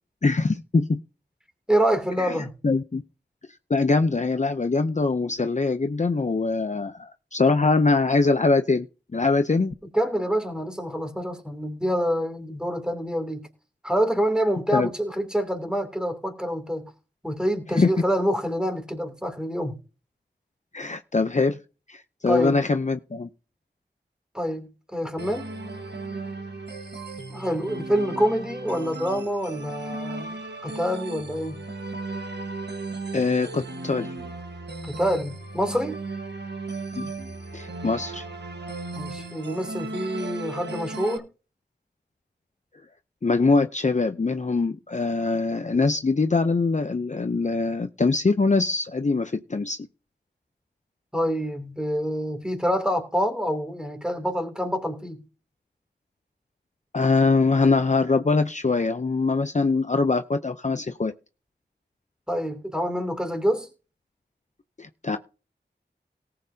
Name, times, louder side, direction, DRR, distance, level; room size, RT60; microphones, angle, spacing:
voice 1, 0.2-1.0 2.2-2.4 2.6-3.0 3.7-8.9 9.1-9.7 14.7-14.9 17.7-17.9 20.7-21.6 21.9-23.3 33.1-34.1 37.0-37.1 37.5-38.3 43.2-49.9 56.9-61.1 64.8-65.2, left 3 dB, 40° left, 0.6 m, -23 dB
voice 2, 1.7-2.5 9.9-13.5 13.8-16.9 17.2-19.8 22.3-22.6 24.3-25.5 27.3-30.4 30.6-31.6 34.8-36.0 39.0-41.3 51.1-55.2 62.3-63.7, equal, 5° right, 2.8 m, -26 dB
sound 1, 25.2-41.2, right 3 dB, 75° right, 1.5 m, -36 dB
18.5 x 7.7 x 2.8 m
wide cardioid pair, 65°, 18 cm